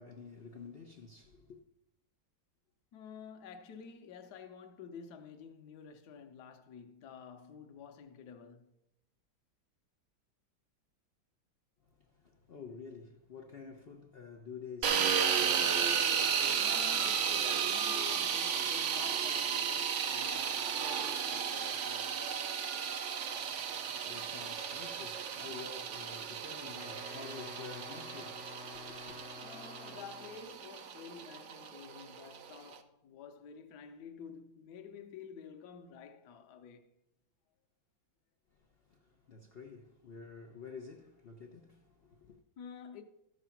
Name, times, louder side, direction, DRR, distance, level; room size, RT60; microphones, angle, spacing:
voice 1, 0.0-1.6 12.1-15.3 15.6-16.0 23.4-29.2 38.9-42.4, left 5 dB, 80° left, 0.5 m, -50 dB
voice 2, 2.9-8.7 16.6-22.2 29.4-36.9 42.6-43.0, left 6 dB, 60° left, 1.3 m, -50 dB
sound 1, 14.8-32.8, right 7 dB, 80° right, 0.6 m, -34 dB
Wind instrument woodwind instrument, 26.6-30.5, left 5 dB, 45° left, 0.7 m, -51 dB
13.5 x 5.0 x 5.8 m
omnidirectional pair, 2.1 m